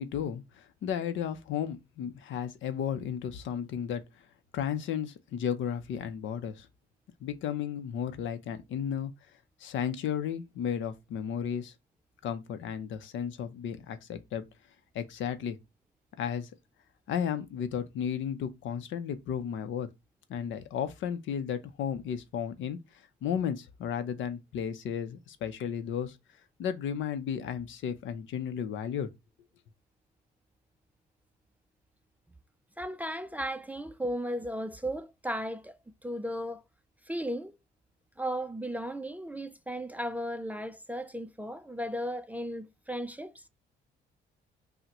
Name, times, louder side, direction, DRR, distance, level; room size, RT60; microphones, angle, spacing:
voice 1, 0.0-4.0 4.5-6.7 7.2-9.1 9.6-11.7 12.2-14.4 14.9-15.6 16.2-16.5 17.1-19.9 20.3-22.8 23.2-26.2 26.6-29.1, left 8 dB, 75° left, 0.6 m, -34 dB
voice 2, 32.8-35.7 36.0-36.6 37.1-37.5 38.2-43.5, equal, 10° right, 0.4 m, -35 dB
5.6 x 2.1 x 2.9 m
cardioid pair, 90°, 20 cm